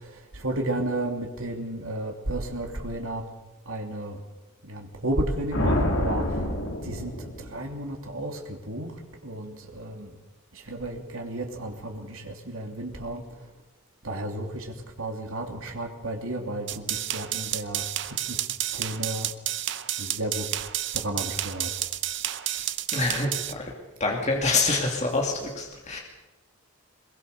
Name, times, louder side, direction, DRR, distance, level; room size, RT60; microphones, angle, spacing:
voice 1, 0.0-3.3 3.6-4.2 4.6-6.5 6.8-10.2 10.5-13.5 14.0-19.3 20.0-20.6 20.9-21.9, right 1 dB, 70° right, 3 dB, 3.0 m, -33 dB
sound 1, 5.5-7.8, left 1 dB, 65° left, 3.1 m, -27 dB
sound 2, 16.7-23.5, right 13 dB, 55° right, 0.8 m, -30 dB
voice 2, 22.9-23.7 24.0-26.0, left 3 dB, 30° left, 0 dB, 2.6 m, -26 dB
22.0 x 22.0 x 6.7 m, 1.1 s
head